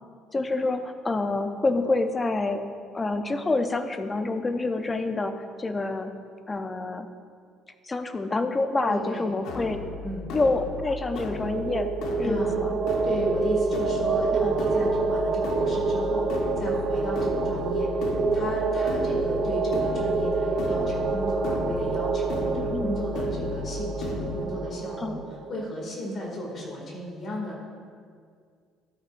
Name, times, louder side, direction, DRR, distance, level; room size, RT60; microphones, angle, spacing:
voice 1, 0.3-2.6 2.9-6.1 6.5-7.1 7.8-9.8 10.3-11.9 12.2-12.8 14.4-14.6 22.6-22.9 25.0-25.2, left 2 dB, 20° left, 8 dB, 0.6 m, -27 dB
voice 2, 8.9-9.6 10.0-10.3 12.2-12.6 13.0-25.2 25.5-27.6, left 1 dB, 40° left, -2 dB, 2.4 m, -34 dB
sound 1, 9.4-24.4, left 3 dB, 75° left, 1.1 m, -35 dB
sound 2, 11.2-25.6, right 4 dB, 50° right, 0.7 m, -27 dB
13.0 x 8.5 x 2.6 m, 2.1 s
cardioid pair, 110°, 0 cm